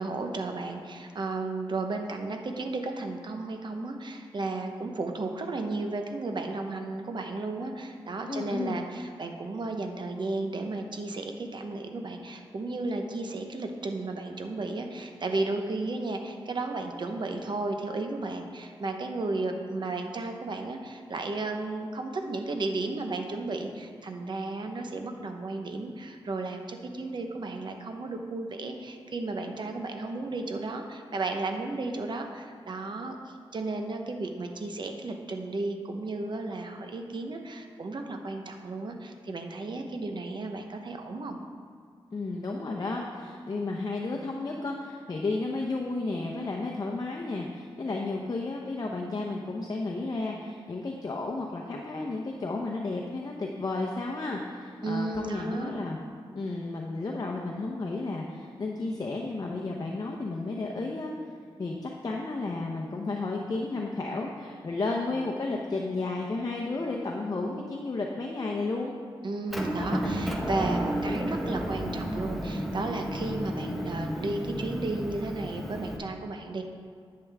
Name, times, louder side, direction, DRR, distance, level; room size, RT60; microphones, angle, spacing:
voice 1, 0.0-41.4 54.8-55.7 69.2-76.6, right 2 dB, 50° right, 4 dB, 0.9 m, -34 dB
voice 2, 8.3-8.8 42.1-56.0 56.3-61.1 61.6-69.0, left 3 dB, 40° left, 0 dB, 0.8 m, -32 dB
Motor vehicle (road) / Engine, 69.5-76.0, equal, ahead, 1.0 m, -32 dB
10.5 x 7.8 x 3.5 m, 2.2 s
wide cardioid pair, 110°, 10 cm